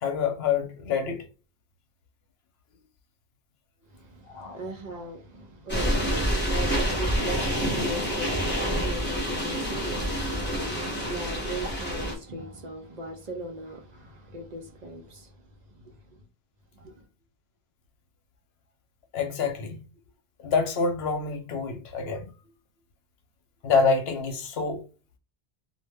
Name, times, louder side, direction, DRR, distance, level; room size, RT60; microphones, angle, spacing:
voice 1, 0.0-1.3 4.3-4.6 19.1-19.8 20.4-22.3 23.6-24.8, left 5 dB, 90° left, 0.9 m, -26 dB
voice 2, 3.9-15.3 15.8-15.9 16.7-17.0, right 1 dB, 55° right, 0.6 m, -38 dB
sound 1, 5.7-12.2, equal, 10° left, 0.7 m, -27 dB
2.1 x 2.1 x 3.3 m
omnidirectional pair, 1.0 m